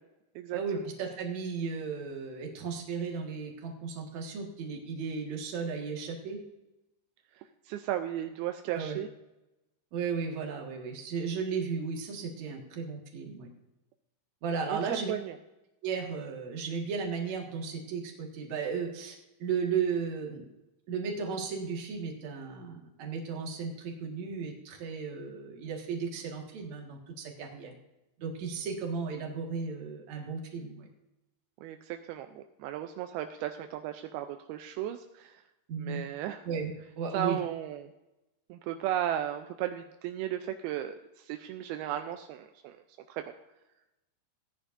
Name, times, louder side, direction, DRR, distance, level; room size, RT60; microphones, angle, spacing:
voice 1, 0.5-6.4 8.7-9.0 9.9-13.5 14.4-15.1 15.8-20.4 20.9-27.7 28.2-30.9 35.7-36.0 36.4-36.7 37.0-37.4, right 5 dB, 55° right, 1 dB, 2.5 m, -35 dB
voice 2, 7.4-9.1 14.7-15.3 31.6-35.4 35.8-36.5 37.1-37.9 38.5-42.8 43.1-43.3, right 11 dB, 85° right, 7 dB, 2.2 m, -35 dB
17.0 x 10.0 x 2.6 m, 0.95 s
omnidirectional pair, 4.9 m